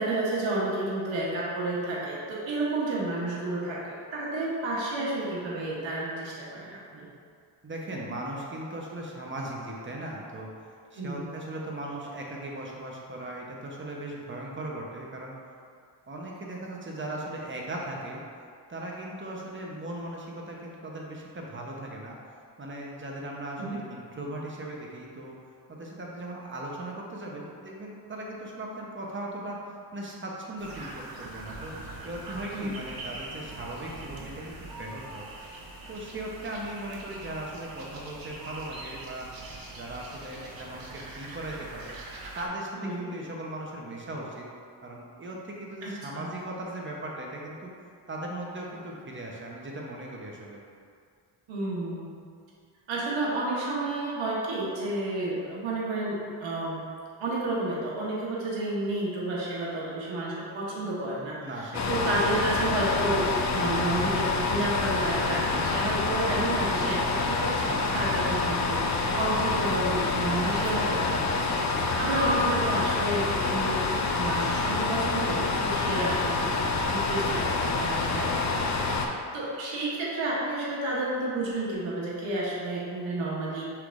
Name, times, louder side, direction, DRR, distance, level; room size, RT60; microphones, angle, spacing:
voice 1, 0.0-7.0 11.0-11.4 23.6-23.8 32.5-32.7 42.8-43.1 45.8-46.3 51.5-52.1 52.9-56.8 57.2-76.5 76.8-83.6, right 2 dB, 80° right, -6 dB, 1.1 m, -31 dB
voice 2, 7.6-10.5 10.9-15.3 16.1-18.2 18.7-22.2 22.6-25.3 25.7-29.6 29.9-35.3 35.9-39.3 39.7-41.9 42.3-44.5 44.8-47.7 48.1-50.6 61.4-62.4, right 1 dB, 25° right, -2 dB, 0.9 m, -38 dB
sound 1, 30.6-42.5, right 2 dB, 50° right, 0.9 m, -43 dB
sound 2, 61.7-79.1, left 3 dB, 40° left, 0.5 m, -27 dB
5.7 x 3.4 x 2.5 m, 2.3 s
cardioid pair, 80°, 45 cm